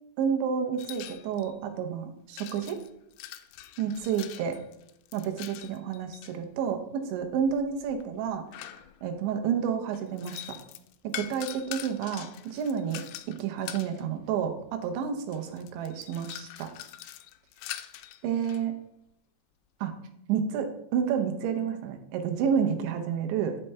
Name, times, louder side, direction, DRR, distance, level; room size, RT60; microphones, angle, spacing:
voice 1, 0.2-2.8 3.8-4.6 5.1-8.8 9.0-10.6 11.0-16.7 18.2-18.8 19.8-19.9 20.3-23.6, right 7 dB, 80° right, 6 dB, 3.2 m, -30 dB
sound 1, 0.8-1.6 2.4-6.4 7.2-9.2 9.9-14.0 14.9-15.0 15.3-18.6, left 13 dB, 85° left, 2.8 m, -43 dB
11.0 x 5.5 x 3.3 m, 0.77 s
omnidirectional pair, 5.3 m